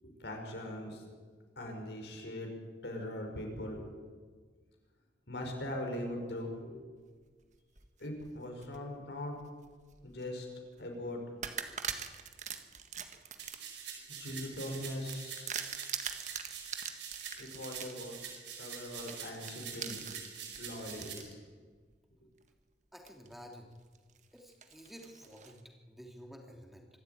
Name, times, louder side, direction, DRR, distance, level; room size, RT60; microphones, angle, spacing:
voice 1, 0.0-1.0 1.6-2.5 2.8-3.9 5.3-6.8 8.0-9.4 10.0-10.5 10.8-11.2 14.1-15.7 17.4-18.2 18.5-20.2 20.6-21.4, left 1 dB, 70° left, 2 dB, 5.2 m, -41 dB
sound 1, 7.5-8.8 9.3-10.3 10.7-10.9 11.4-21.3 21.9-22.0 23.1-23.5 23.9-25.6, right 7 dB, 40° right, 1.7 m, -43 dB
sound 2, 13.4-21.1, right 7 dB, 85° right, 4.9 m, -45 dB
voice 2, 22.9-23.7 24.3-26.9, equal, ahead, 2 dB, 2.8 m, -51 dB
25.0 x 13.0 x 9.3 m, 1.5 s
head